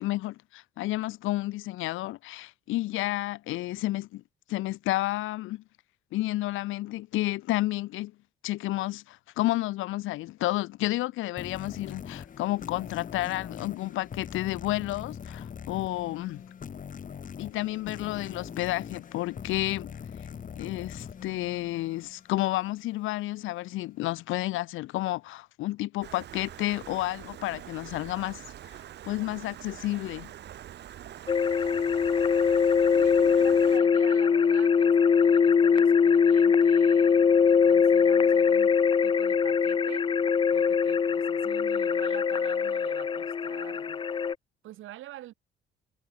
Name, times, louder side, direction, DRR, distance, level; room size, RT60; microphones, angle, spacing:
voice 1, 0.0-4.2 4.5-5.6 6.1-8.1 8.4-16.4 17.4-19.9 20.6-28.4 29.0-30.3, left 17 dB, 85° left, 0.6 m, -31 dB
sound 1, 11.4-22.5, left 7 dB, 40° left, 1.1 m, -42 dB
Stream, 26.0-33.8, right 11 dB, 60° right, 0.7 m, -45 dB
sound 2, 31.3-44.3, left 6 dB, 25° left, 0.4 m, -22 dB
voice 2, 32.9-38.7 39.0-40.1 40.5-44.0 44.6-45.3, right 14 dB, 85° right, 2.5 m, -46 dB
cardioid pair, 90°, 20 cm